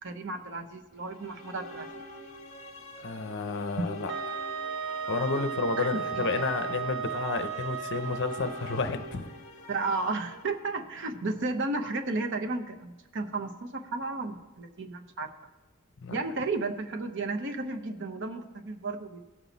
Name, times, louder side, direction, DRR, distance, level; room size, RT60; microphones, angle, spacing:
voice 1, 0.0-1.9 3.8-3.9 5.8-6.0 9.7-15.3 16.1-19.2, right 3 dB, 55° right, 6 dB, 0.8 m, -33 dB
sound 1, 0.9-11.2, left 1 dB, 30° left, 1.5 m, -45 dB
voice 2, 3.0-4.1 5.1-9.3 16.0-16.1, left 4 dB, 55° left, 9 dB, 0.6 m, -31 dB
Wind instrument woodwind instrument, 4.1-8.8, right 6 dB, 85° right, 0.8 m, -35 dB
17.0 x 6.0 x 4.0 m, 1.1 s
head